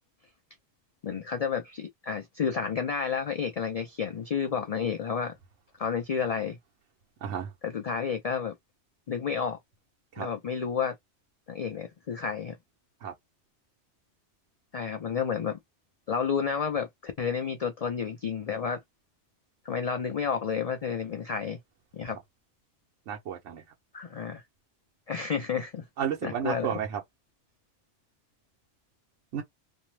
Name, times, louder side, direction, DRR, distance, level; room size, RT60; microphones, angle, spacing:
voice 1, 1.0-5.3 5.8-6.6 7.6-8.6 9.1-9.6 10.2-11.0 11.5-12.6 14.7-15.6 16.1-18.8 19.6-21.6 21.9-22.2 23.9-24.4 25.1-25.8 26.2-26.8, left 6 dB, 80° left, 0.3 m, -31 dB
voice 2, 23.1-23.6 26.0-27.0 29.3-29.4, right 8 dB, 80° right, 1.0 m, -32 dB
2.6 x 2.0 x 3.1 m
omnidirectional pair, 1.2 m